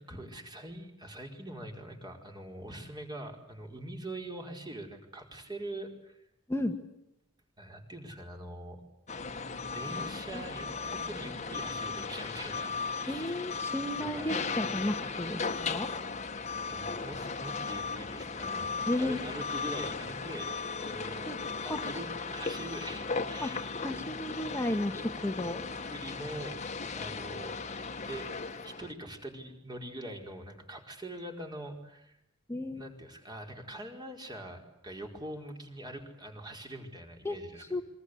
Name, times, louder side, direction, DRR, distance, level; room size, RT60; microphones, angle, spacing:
voice 1, 0.0-6.2 7.6-8.8 9.7-13.4 14.0-14.3 16.7-18.7 19.0-20.5 20.8-24.1 25.3-25.5 25.9-27.6 28.1-28.3 28.6-32.2 32.7-37.6, right 1 dB, 20° right, 3 dB, 4.9 m, -43 dB
sound 1, 9.1-28.9, left 4 dB, 35° left, 1.7 m, -36 dB
voice 2, 13.1-15.9 18.9-19.2 21.3-21.4 21.7-21.8 23.4-23.5 23.8-25.6 32.5-32.8 37.3-37.4 37.7-37.8, left 1 dB, 15° left, 5 dB, 1.8 m, -33 dB
27.5 x 24.0 x 8.1 m, 0.85 s
head